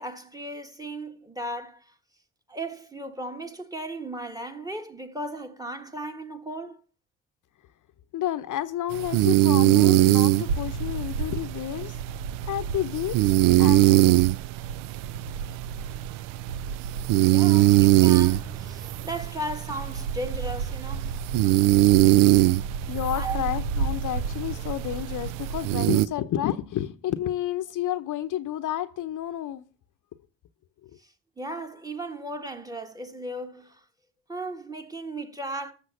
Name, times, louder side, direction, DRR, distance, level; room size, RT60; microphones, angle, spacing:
voice 1, 0.0-1.9 2.5-6.8 17.3-21.2 23.1-23.5 31.0-33.8 34.3-35.7, right 1 dB, 10° right, 1.5 m, -36 dB
voice 2, 8.1-12.0 12.5-14.3 22.9-29.6, left 12 dB, 50° left, 0.8 m, -30 dB
sound 1, 8.9-26.1, right 17 dB, 55° right, 0.5 m, -22 dB
sound 2, 10.5-26.0, right 4 dB, 85° right, 0.8 m, -34 dB
sound 3, 15.9-20.1, right 4 dB, 30° right, 4.6 m, -48 dB
14.0 x 6.8 x 5.6 m
hypercardioid pair, 55°, 41 cm